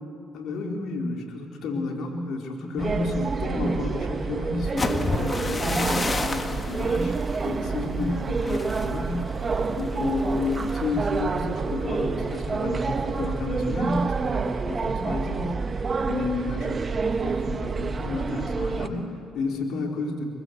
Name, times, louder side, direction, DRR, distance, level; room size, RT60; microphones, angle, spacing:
voice 1, 0.3-7.2 7.4-9.4 9.7-15.5 16.0-20.2, left 3 dB, 70° left, 1 dB, 4.1 m, -31 dB
sound 1, 2.8-18.9, right 4 dB, 40° right, 1.4 m, -28 dB
sound 2, 4.6-12.5 12.8-13.2 13.5-13.9, left 3 dB, 30° left, 1.9 m, -33 dB
24.5 x 21.5 x 8.1 m, 2.4 s
supercardioid pair, 65°, 0 cm